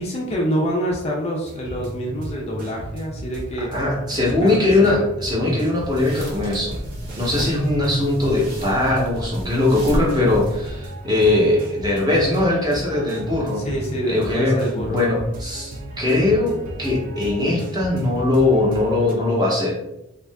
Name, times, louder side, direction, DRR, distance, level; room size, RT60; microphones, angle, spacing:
voice 1, 0.0-3.7 4.2-4.6 4.8-5.1 13.6-15.0, equal, 30° left, -1 dB, 0.4 m, -26 dB
sound 1, 1.4-19.1, right 1 dB, 40° right, 0.4 m, -35 dB
voice 2, 3.7-6.8 7.2-13.6 14.1-14.6 14.9-19.8, left 2 dB, 20° right, -4 dB, 0.7 m, -20 dB
sound 2, 5.7-11.0, equal, 65° right, 1.0 m, -33 dB
2.7 x 2.4 x 3.4 m, 0.89 s
head